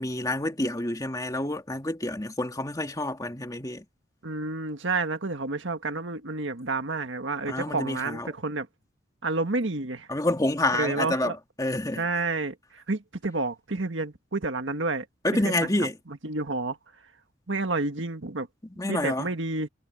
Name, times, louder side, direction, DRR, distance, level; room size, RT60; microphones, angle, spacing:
voice 1, 0.0-3.8 7.5-8.3 10.1-12.0 15.2-16.0 18.8-19.3, left 1 dB, 20° left, 2.2 m, -28 dB
voice 2, 4.2-8.7 9.2-10.1 10.7-11.4 12.0-15.1 15.4-15.7 16.1-16.8 17.5-18.5 18.9-19.7, right 3 dB, 80° right, 1.7 m, -30 dB
head